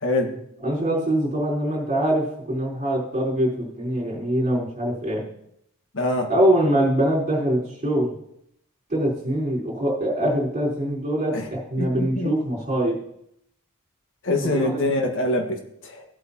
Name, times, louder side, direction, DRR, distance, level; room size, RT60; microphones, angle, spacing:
voice 1, 0.0-0.3 5.9-6.3 11.3-11.5 11.8-12.3 14.2-16.0, left 2 dB, 60° left, 3 dB, 1.6 m, -24 dB
voice 2, 0.6-5.2 6.3-8.1 8.9-13.0 14.4-14.8, right 1 dB, 35° right, -6 dB, 4.3 m, -23 dB
16.0 x 8.3 x 2.9 m, 0.74 s
head